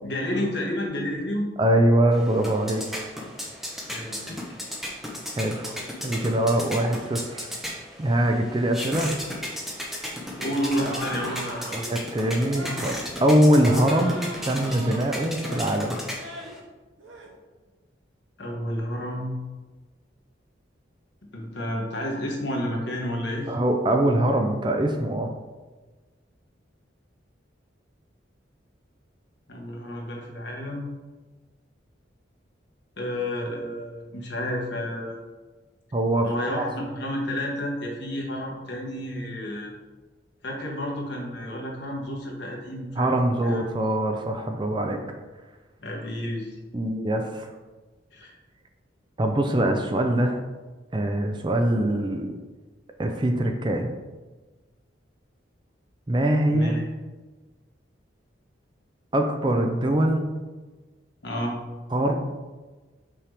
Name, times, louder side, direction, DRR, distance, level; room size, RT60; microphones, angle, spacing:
voice 1, 0.0-1.5 3.8-4.4 10.4-11.9 18.4-19.3 21.3-23.6 29.5-30.9 33.0-35.2 36.2-39.7 40.4-43.1 43.4-43.6 45.8-46.5 48.1-48.3 56.5-56.8 61.2-61.6, equal, 65° left, -1 dB, 1.4 m, -30 dB
voice 2, 1.6-3.1 5.4-5.8 6.0-7.5 8.0-9.2 11.7-16.0 23.5-25.3 35.9-36.3 36.5-36.7 43.0-45.0 46.7-47.5 49.2-50.4 50.9-52.3 53.0-53.9 56.1-56.8 59.1-60.3 61.9-62.1, right 1 dB, 25° right, 4 dB, 0.4 m, -23 dB
sound 1, 2.1-16.6, equal, ahead, 0.8 m, -35 dB
sound 2, 10.8-11.7 12.5-13.0 13.5-15.1 15.4-15.8 16.1-16.6 17.0-17.3, right 1 dB, 90° right, 1.1 m, -37 dB
5.6 x 5.4 x 3.4 m, 1.2 s
head